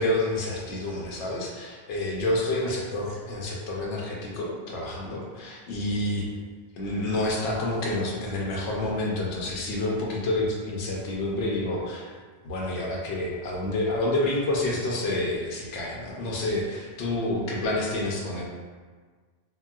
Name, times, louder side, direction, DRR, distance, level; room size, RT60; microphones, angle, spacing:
voice 1, 0.0-6.3 6.8-12.1 12.4-18.5, left 1 dB, 80° left, -3 dB, 0.9 m, -28 dB
3.8 x 2.1 x 2.2 m, 1.5 s
omnidirectional pair, 1.2 m